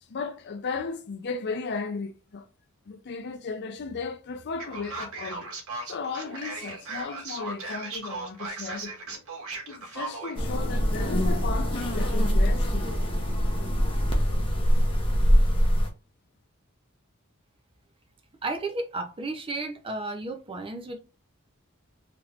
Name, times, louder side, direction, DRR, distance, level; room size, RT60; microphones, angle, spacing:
voice 1, 0.1-2.5 2.9-5.5 5.9-9.2 9.7-12.9, left 4 dB, 50° left, 0.5 m, -35 dB
Male speech man speaking, 4.6-10.4, right 3 dB, 80° right, 1.3 m, -37 dB
sound 1, 10.3-15.9, equal, 25° left, 0.8 m, -23 dB
voice 2, 18.4-21.0, right 2 dB, 25° right, 0.5 m, -33 dB
3.5 x 2.9 x 2.4 m
head